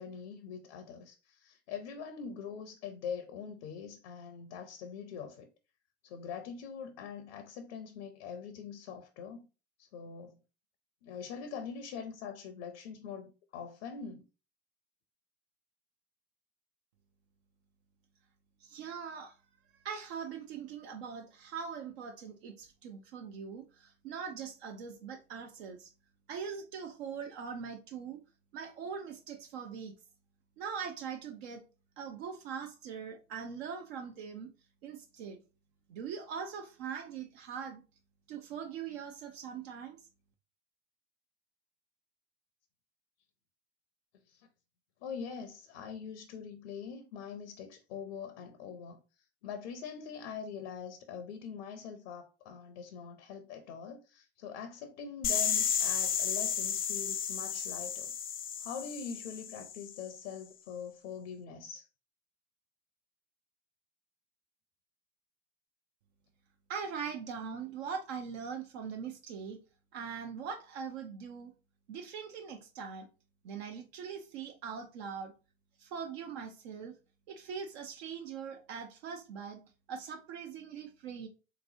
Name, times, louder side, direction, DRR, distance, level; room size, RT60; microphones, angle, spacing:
voice 1, 0.0-5.5 6.0-9.5 9.8-10.4 11.0-14.2 44.3-44.5 45.0-58.1 58.6-61.9, left 6 dB, 65° left, 0.7 m, -43 dB
voice 2, 18.6-19.4 19.7-25.9 26.3-28.2 28.5-29.9 30.6-31.6 32.0-34.5 34.8-35.4 35.9-37.8 38.3-40.0 66.7-69.6 69.9-71.5 71.9-73.1 73.4-75.3 75.8-76.9 77.3-79.6 79.9-81.3, right 6 dB, 65° right, 0.7 m, -41 dB
sound 1, 55.2-60.0, left 8 dB, 25° left, 0.5 m, -33 dB
3.5 x 3.0 x 2.6 m
hypercardioid pair, 85°, 33 cm